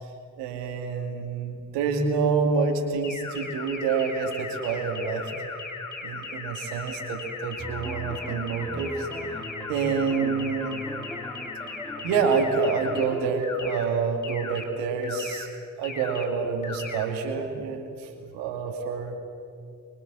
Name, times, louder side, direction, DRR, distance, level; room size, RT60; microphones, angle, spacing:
voice 1, 0.4-5.3 6.0-9.1 9.7-10.8 12.0-15.5 15.8-19.2, right 5 dB, 70° right, 4 dB, 2.3 m, -27 dB
sound 1, 3.0-13.0 13.4-13.8 14.2-14.6 15.0-15.4 15.8-16.2 16.6-17.0, left 4 dB, 45° left, 4.0 m, -37 dB
sound 2, 7.6-13.3, equal, 5° left, 2.6 m, -39 dB
25.0 x 22.5 x 7.1 m, 2.5 s
figure-of-eight pair, 40°, 43 cm